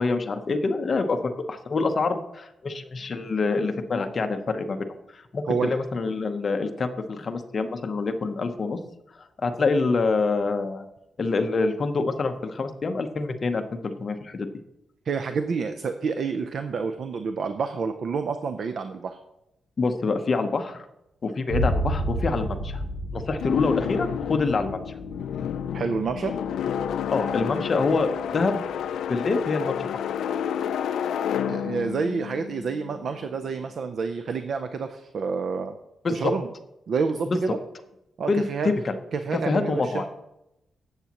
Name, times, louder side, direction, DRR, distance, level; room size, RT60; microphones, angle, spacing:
voice 1, 0.0-4.8 5.1-8.8 9.1-10.9 11.2-14.5 19.8-20.9 21.2-22.8 23.1-24.8 27.1-28.6 29.1-29.8 30.0-30.1 36.0-36.3 37.3-37.4 38.3-39.0 39.3-40.1, left 3 dB, 35° left, 7 dB, 0.8 m, -26 dB
voice 2, 5.5-5.8 15.1-19.2 25.6-26.3 31.5-35.8 36.1-36.5 36.9-37.6 38.2-38.7 39.1-40.1, right 5 dB, 55° right, 8 dB, 0.5 m, -28 dB
Boom, 21.5-29.3, right 1 dB, 25° right, 4.1 m, -32 dB
sound 1, 23.4-33.4, left 9 dB, 85° left, 0.4 m, -30 dB
13.0 x 8.2 x 3.0 m, 0.88 s
wide cardioid pair, 145°, 0 cm